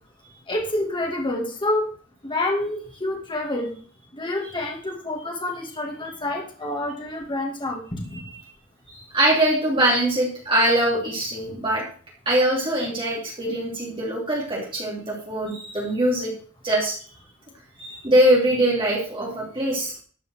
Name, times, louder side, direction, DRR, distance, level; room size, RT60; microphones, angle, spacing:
voice 1, 0.5-1.9 2.2-3.7 4.1-8.3, left 1 dB, 25° left, 1 dB, 2.2 m, -28 dB
voice 2, 8.9-11.8 12.3-16.3 16.6-17.0 17.8-19.9, right 1 dB, 25° right, -3 dB, 3.0 m, -22 dB
12.5 x 5.5 x 6.5 m, 0.44 s
head